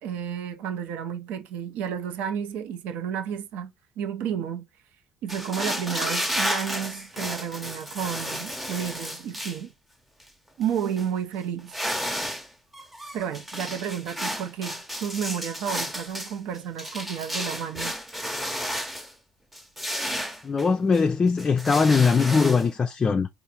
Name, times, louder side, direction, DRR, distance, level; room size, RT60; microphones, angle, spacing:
voice 1, 0.0-3.7 4.0-4.6 5.2-9.7 10.6-11.7 13.1-18.0, right 8 dB, 70° right, 0.5 m, -31 dB
sound 1, 5.3-9.6 10.2-10.3 10.6-11.1 11.6-12.5 12.7-19.1 19.5-21.0 21.4-22.7, equal, 5° right, 0.7 m, -32 dB
voice 2, 20.4-23.3, left 5 dB, 30° left, 0.3 m, -21 dB
3.8 x 2.5 x 2.8 m
hypercardioid pair, 70°, 3 cm